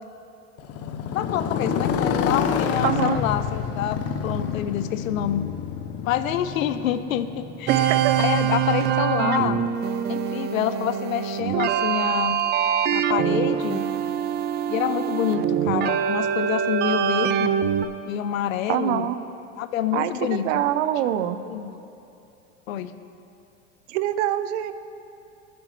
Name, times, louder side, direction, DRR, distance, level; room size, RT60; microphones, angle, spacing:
Motorcycle, 0.6-8.6, left 7 dB, 35° left, 0.8 m, -28 dB
voice 1, 1.1-5.5 6.0-9.6 10.1-12.4 12.9-13.8 14.7-17.5 18.1-19.1 19.6-20.7 21.5-21.7 22.7-22.9, left 10 dB, 85° left, 11 dB, 0.7 m, -27 dB
voice 2, 2.8-3.2 7.7-8.2 18.7-19.2 19.9-21.4 23.9-24.7, right 12 dB, 65° right, 12 dB, 0.7 m, -24 dB
sound 1, 7.7-17.9, right 9 dB, 25° right, 0.4 m, -24 dB
21.0 x 7.7 x 3.2 m, 2.8 s
hypercardioid pair, 100°, 40 cm